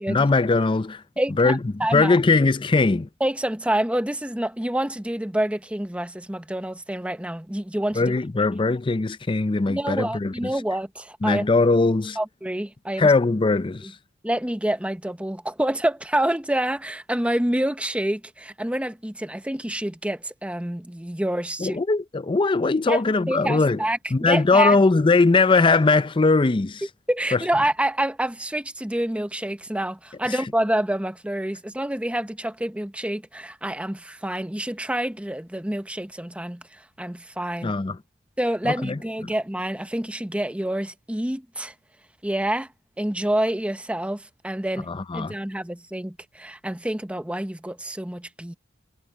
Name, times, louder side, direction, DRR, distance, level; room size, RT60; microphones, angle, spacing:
voice 1, 0.1-1.0 1.4-1.6 1.9-3.1 8.0-10.5 11.2-12.2 13.0-14.0 21.6-23.8 24.1-26.9 27.3-27.4 30.3-30.4 37.6-38.0 38.6-39.3 44.9-45.3, left 3 dB, 25° left, 0.5 m, -20 dB
voice 2, 1.2-2.2 3.2-8.1 9.7-11.5 12.2-13.1 13.8-13.9 14.2-21.8 22.9-23.0 23.3-24.8 27.1-37.8 38.4-41.7 42.2-42.7 43.0-48.5, right 1 dB, 5° right, 0.9 m, -27 dB
head